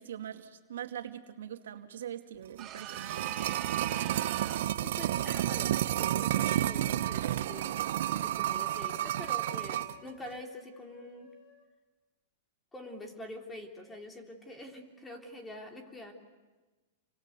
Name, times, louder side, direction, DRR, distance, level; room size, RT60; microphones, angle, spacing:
voice 1, 0.0-3.9, right 10 dB, 80° right, 6 dB, 2.2 m, -43 dB
sound 1, 2.6-4.8, right 11 dB, 30° right, 1.7 m, -42 dB
sound 2, 2.6-10.0 10.3-10.4, right 12 dB, 65° right, 0.9 m, -31 dB
voice 2, 4.8-7.9 8.2-11.3 12.7-16.1, left 1 dB, 10° left, 3 dB, 3.7 m, -46 dB
sound 3, 6.7-11.7, left 7 dB, 45° left, 5.3 m, -57 dB
28.5 x 24.0 x 8.3 m, 1.3 s
hypercardioid pair, 145°, 0 cm